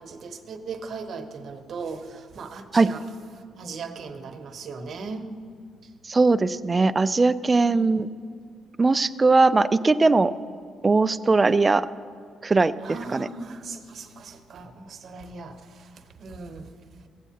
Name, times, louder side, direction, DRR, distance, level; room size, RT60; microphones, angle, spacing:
voice 1, 0.0-3.0 3.3-5.4 5.8-5.9 7.6-8.0 12.8-17.1, right 4 dB, 60° right, 6 dB, 0.9 m, -38 dB
voice 2, 6.0-8.1 8.8-10.3 10.8-11.9 12.4-12.7 13.1-13.3, right 3 dB, 25° right, 13 dB, 0.3 m, -20 dB
16.0 x 8.1 x 2.8 m, 2.2 s
cardioid pair, 90°, 0 cm